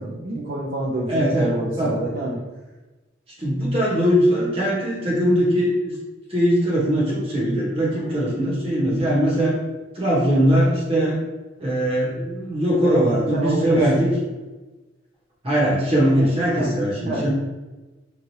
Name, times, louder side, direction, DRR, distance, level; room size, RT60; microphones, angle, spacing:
voice 1, 0.0-2.4 7.9-8.2 12.8-13.0 13.3-13.9 16.2-16.3 16.5-16.7 17.0-17.3, right 2 dB, 50° right, -5 dB, 0.4 m, -27 dB
voice 2, 1.1-2.3 3.4-5.9 6.3-9.6 9.9-11.2 11.6-14.1 15.4-17.3, equal, 30° right, -6 dB, 1.0 m, -21 dB
3.1 x 2.4 x 2.7 m, 1.2 s
head